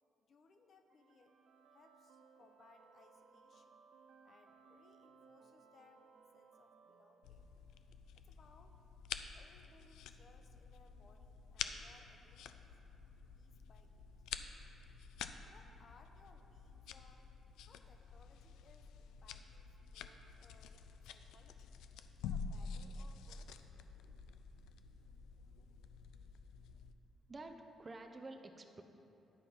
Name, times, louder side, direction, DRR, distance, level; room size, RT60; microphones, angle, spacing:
voice 1, 0.2-1.3 1.7-3.8 4.2-6.1 6.3-7.5 8.2-8.8 9.3-12.8 13.3-14.4 15.4-17.3 17.6-21.8 22.2-23.6, left 4 dB, 50° left, 5 dB, 0.7 m, -67 dB
sound 1, 0.9-7.9, right 5 dB, 75° right, 0.5 m, -65 dB
sound 2, 7.2-26.9, left 6 dB, 90° left, 0.3 m, -49 dB
voice 2, 27.3-28.8, right 2 dB, 30° right, 5 dB, 0.6 m, -50 dB
10.5 x 4.5 x 5.4 m, 3.0 s
cardioid pair, 90°, 0 cm